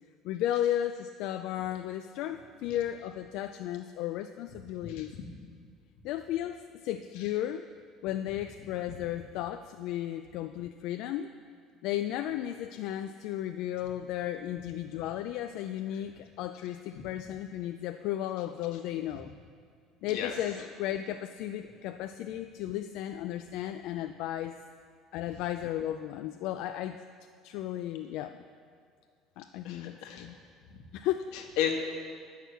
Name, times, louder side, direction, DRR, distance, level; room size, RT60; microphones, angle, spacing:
voice 1, 0.2-5.2 6.0-7.6 8.0-11.3 11.8-19.3 20.0-24.6 25.1-27.0 27.4-28.4 29.4-30.4 30.9-31.3, left 12 dB, 65° left, 8 dB, 0.3 m, -34 dB
voice 2, 4.8-5.2 15.0-15.1 15.9-16.0 17.0-17.1 20.1-20.3 29.6-30.3 30.7-30.8 31.3-31.8, left 9 dB, 85° left, 3 dB, 1.4 m, -34 dB
10.0 x 6.4 x 7.9 m, 2.2 s
cardioid pair, 160°, 0 cm